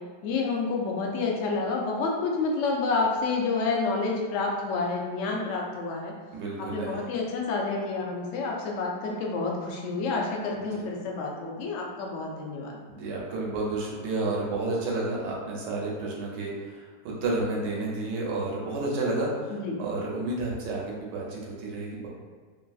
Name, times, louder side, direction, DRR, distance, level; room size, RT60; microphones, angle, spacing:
voice 1, 0.2-6.1 6.6-12.8 19.5-19.8, left 3 dB, 85° left, -1 dB, 0.6 m, -29 dB
voice 2, 6.3-7.1 10.6-10.8 12.9-22.1, right 2 dB, 85° right, -3 dB, 1.3 m, -31 dB
3.0 x 2.6 x 2.3 m, 1.5 s
omnidirectional pair, 1.8 m